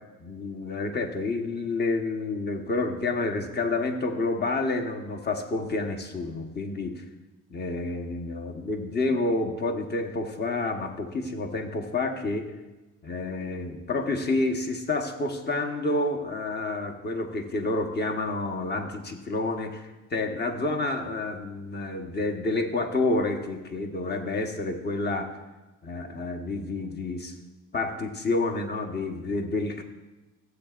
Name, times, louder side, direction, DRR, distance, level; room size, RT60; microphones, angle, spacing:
voice 1, 0.2-7.0 7.5-12.5 13.0-25.3 25.8-27.3 27.7-29.8, left 2 dB, 35° left, 3 dB, 1.2 m, -29 dB
15.5 x 8.0 x 2.5 m, 1.1 s
cardioid pair, 90°, 30 cm